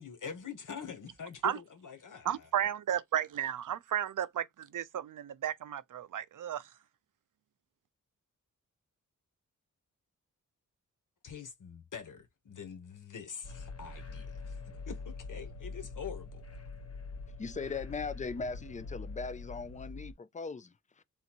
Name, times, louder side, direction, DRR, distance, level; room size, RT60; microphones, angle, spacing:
voice 1, 0.0-2.5 11.2-14.6 14.9-16.4, left 7 dB, 70° left, 1.2 m, -45 dB
voice 2, 2.2-6.6, right 10 dB, 70° right, 0.6 m, -33 dB
sound 1, 13.4-20.1, left 3 dB, 50° left, 1.2 m, -44 dB
voice 3, 17.4-21.0, left 4 dB, 25° left, 0.4 m, -39 dB
3.8 x 2.6 x 4.4 m
wide cardioid pair, 150°, 32 cm